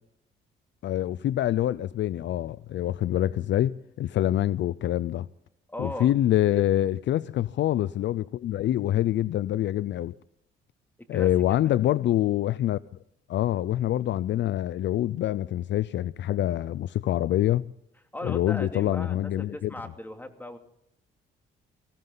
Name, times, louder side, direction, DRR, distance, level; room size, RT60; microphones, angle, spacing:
voice 1, 0.8-5.3 5.8-10.1 11.1-12.8 13.3-17.7 18.2-19.7, left 13 dB, 65° left, 0.5 m, -25 dB
voice 2, 5.7-6.1 11.0-11.3 11.6-11.7 18.1-20.6, left 1 dB, 10° left, 2.7 m, -38 dB
21.0 x 16.0 x 4.0 m
cardioid pair, 90°, 20 cm